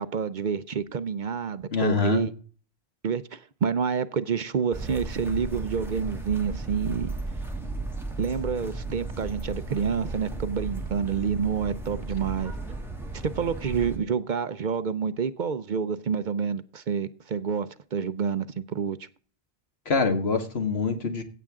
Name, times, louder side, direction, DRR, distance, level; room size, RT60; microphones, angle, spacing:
voice 1, 0.0-2.3 3.0-7.1 8.2-12.5 13.1-19.0, right 6 dB, 55° right, 0.7 m, -28 dB
voice 2, 1.7-2.3 19.9-21.2, left 4 dB, 80° left, 1.9 m, -25 dB
sound 1, 4.7-14.0, right 2 dB, ahead, 2.4 m, -35 dB
16.0 x 7.6 x 3.6 m
omnidirectional pair, 1.0 m